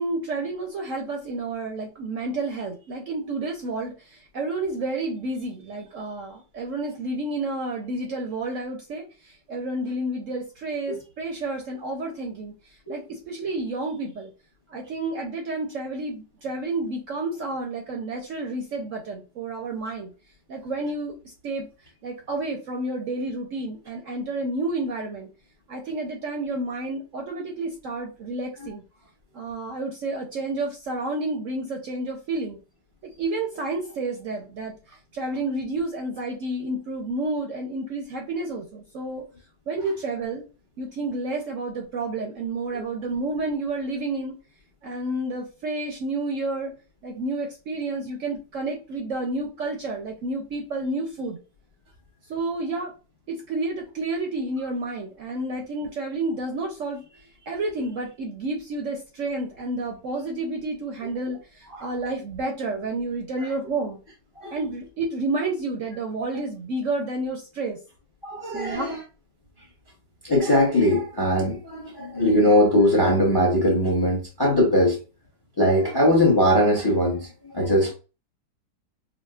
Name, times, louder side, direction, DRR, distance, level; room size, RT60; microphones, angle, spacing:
voice 1, 0.0-12.5 12.9-14.3 14.7-20.1 20.5-21.2 21.4-21.7 22.0-25.3 25.7-28.8 29.3-32.6 33.2-34.8 35.1-39.2 39.7-40.4 40.8-44.3 44.8-46.7 47.0-51.4 52.3-52.9 53.3-64.0 64.5-67.8 68.5-68.9, right 2 dB, 65° right, 0.8 m, -30 dB
voice 2, 68.2-69.0 70.2-75.0 75.6-77.9, left 1 dB, 25° left, 0.5 m, -20 dB
4.8 x 2.1 x 2.3 m
omnidirectional pair, 1.8 m